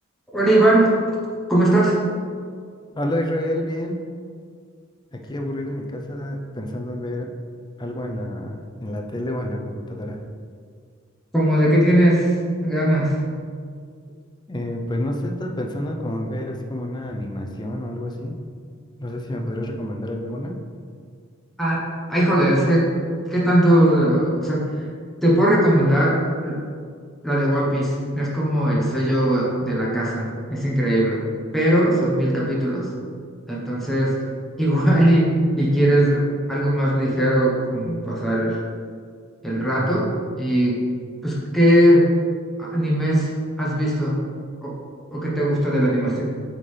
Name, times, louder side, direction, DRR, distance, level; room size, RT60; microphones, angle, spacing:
voice 1, 0.3-0.9 1.5-1.9 11.3-12.3 12.6-13.2 21.6-22.9 23.3-24.9 25.2-26.6 27.2-31.2 31.5-32.9 33.5-34.1 34.6-38.6 39.4-40.1 40.4-40.8 41.2-42.1 42.6-44.2 44.6-44.7 45.1-46.2, right 1 dB, ahead, -6 dB, 1.0 m, -19 dB
voice 2, 2.9-4.0 5.1-7.3 7.8-10.2 14.5-18.4 19.0-20.6 39.7-39.9, left 1 dB, 20° left, 2 dB, 0.5 m, -29 dB
8.3 x 3.7 x 3.3 m, 2.1 s
head